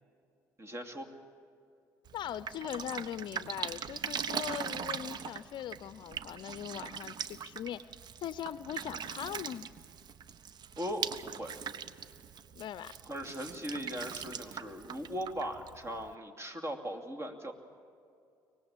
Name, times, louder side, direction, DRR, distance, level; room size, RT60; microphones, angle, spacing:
voice 1, 0.6-1.1 10.8-11.5 13.1-17.5, equal, 30° right, 4 dB, 2.6 m, -39 dB
voice 2, 2.1-7.9 8.2-9.7 12.6-12.9, left 10 dB, 55° left, 17 dB, 0.5 m, -40 dB
Drip, 2.1-16.1, right 7 dB, 50° right, 0.9 m, -41 dB
24.0 x 19.5 x 7.2 m, 2.5 s
hypercardioid pair, 60°, 9 cm